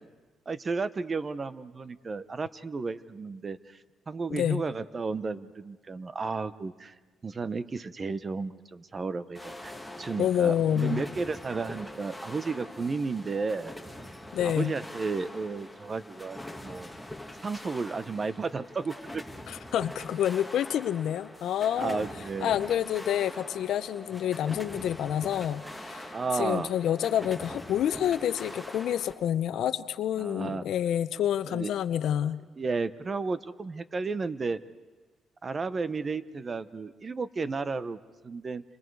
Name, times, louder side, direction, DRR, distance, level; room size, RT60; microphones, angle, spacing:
voice 1, 0.5-6.9 7.2-13.7 14.4-16.9 17.4-19.2 21.8-22.6 24.4-24.5 26.1-26.7 30.2-30.6 31.5-31.7 32.6-34.6 35.4-38.6, right 4 dB, 35° right, 14 dB, 0.9 m, -33 dB
voice 2, 4.3-4.6 10.2-11.0 14.3-14.7 19.5-22.0 22.4-26.1 26.4-32.4, left 10 dB, 75° left, 13 dB, 0.8 m, -28 dB
sound 1, 9.3-29.1, left 1 dB, ahead, 2.1 m, -43 dB
29.5 x 27.0 x 4.8 m, 1.3 s
cardioid pair, 90°, 0 cm